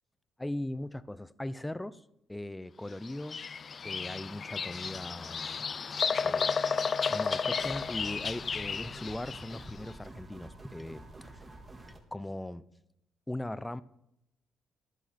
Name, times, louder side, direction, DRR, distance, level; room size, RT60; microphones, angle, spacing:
voice 1, 0.4-2.0 2.3-3.5 3.8-5.7 6.2-6.6 7.1-11.4 11.9-12.6 13.3-13.8, left 1 dB, 10° left, 0.8 m, -39 dB
Bird vocalization bird call bird song, 3.0-9.7, left 5 dB, 45° left, 0.5 m, -33 dB
sound 1, 7.6-12.0, right 2 dB, 25° right, 3.5 m, -49 dB
14.5 x 11.0 x 4.3 m
cardioid pair, 90°, 0 cm